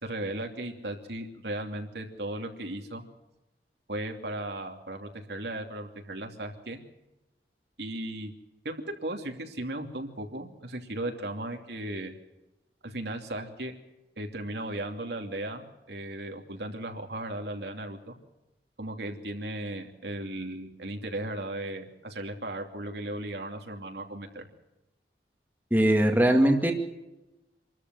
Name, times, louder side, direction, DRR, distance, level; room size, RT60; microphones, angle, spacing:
voice 1, 0.0-3.0 3.9-6.8 7.8-8.3 8.6-8.7 9.0-12.1 12.8-13.7 14.2-18.1 18.8-24.5, right 1 dB, 70° right, 4 dB, 2.8 m, -36 dB
voice 2, 25.7-26.7, right 1 dB, 10° right, 2 dB, 2.1 m, -21 dB
26.5 x 13.5 x 7.7 m, 1.0 s
head